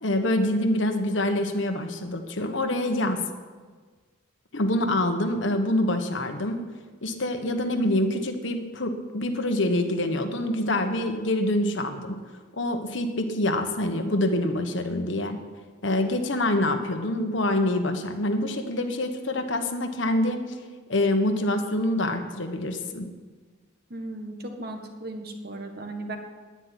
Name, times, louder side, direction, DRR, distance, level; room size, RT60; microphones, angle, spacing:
voice 1, 0.0-3.2 4.5-6.6 7.0-12.2 12.5-15.4 15.8-20.4 20.9-23.1, left 1 dB, 70° left, 6 dB, 1.4 m, -26 dB
voice 2, 23.9-26.2, right 2 dB, 50° right, 4 dB, 1.6 m, -36 dB
10.0 x 9.9 x 9.7 m, 1.5 s
head